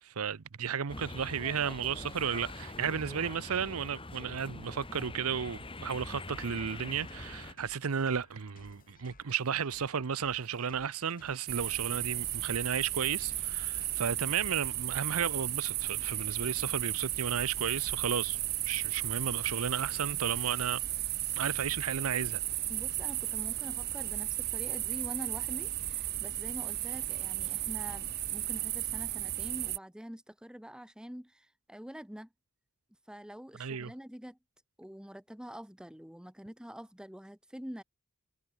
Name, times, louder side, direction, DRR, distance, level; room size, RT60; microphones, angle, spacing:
voice 1, 0.0-20.8 21.3-22.4 33.6-33.9, right 7 dB, 70° right, 0.7 m, -33 dB
sound 1, 0.9-7.5, left 2 dB, 25° left, 1.9 m, -44 dB
sound 2, 6.6-14.1, left 3 dB, 40° left, 7.1 m, -59 dB
sound 3, 11.5-29.8, right 14 dB, 50° right, 1.2 m, -34 dB
voice 2, 22.7-32.3 33.1-34.4 34.8-37.8, equal, 5° right, 1.2 m, -46 dB
head